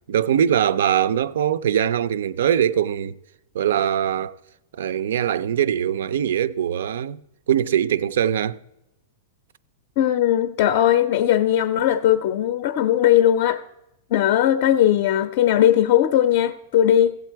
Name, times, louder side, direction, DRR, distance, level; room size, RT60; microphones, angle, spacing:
voice 1, 0.1-3.1 3.5-4.3 4.7-7.2 7.5-8.6, right 9 dB, 80° right, 0.4 m, -22 dB
voice 2, 10.0-13.6 14.1-17.2, left 11 dB, 40° left, 0.4 m, -18 dB
15.5 x 7.7 x 4.5 m
supercardioid pair, 180°, 0 cm